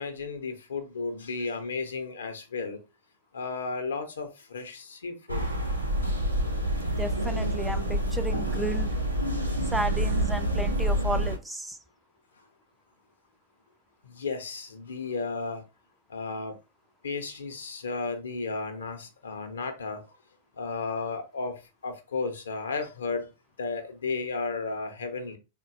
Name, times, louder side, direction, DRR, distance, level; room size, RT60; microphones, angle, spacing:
voice 1, 0.0-2.8 3.3-5.4 7.4-7.5 14.0-15.6 16.1-16.5 17.0-20.0 20.6-23.3 23.6-25.4, left 4 dB, 70° left, 0.6 m, -34 dB
sound 1, 5.3-11.4, right 1 dB, 90° right, 0.6 m, -27 dB
voice 2, 7.0-8.9 9.7-11.8, right 1 dB, 5° right, 0.3 m, -33 dB
3.8 x 2.1 x 2.5 m
figure-of-eight pair, 90°, 0 cm